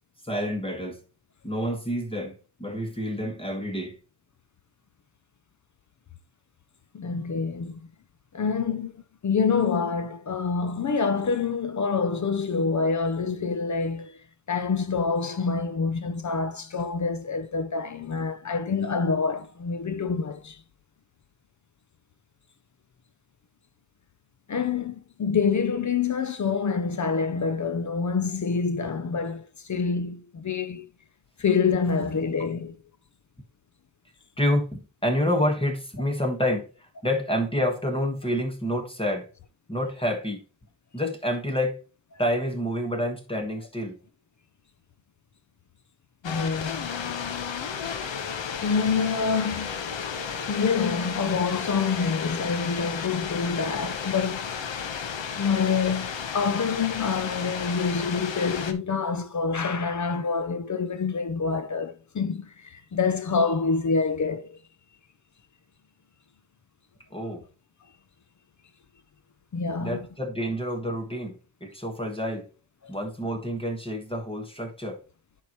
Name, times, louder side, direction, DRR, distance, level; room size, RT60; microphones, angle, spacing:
voice 1, 0.2-1.0 1.4-4.0 34.4-39.3 39.7-40.4 40.9-41.8 42.2-44.0 67.1-67.4 69.8-72.5 72.9-75.0, equal, 10° left, 1.4 m, -28 dB
voice 2, 6.9-7.8 8.3-14.1 14.5-20.6 24.5-30.9 31.4-32.8 46.2-46.9 48.0-49.8 50.5-54.6 55.3-64.6 69.5-70.0 72.8-72.9, left 5 dB, 40° left, 0.6 m, -27 dB
sound 1, 46.2-58.7, left 6 dB, 75° left, 1.0 m, -33 dB
10.0 x 4.7 x 3.0 m
wide cardioid pair, 130°, 46 cm